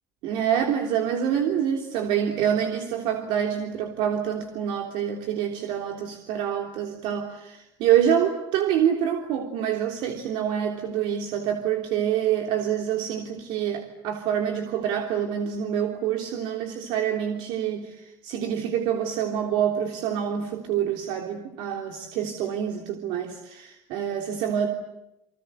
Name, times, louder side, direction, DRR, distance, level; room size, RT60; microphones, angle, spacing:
voice 1, 0.2-24.7, right 9 dB, 75° right, 3 dB, 3.3 m, -26 dB
29.5 x 25.0 x 8.0 m, 0.89 s
cardioid pair, 130°, 9 cm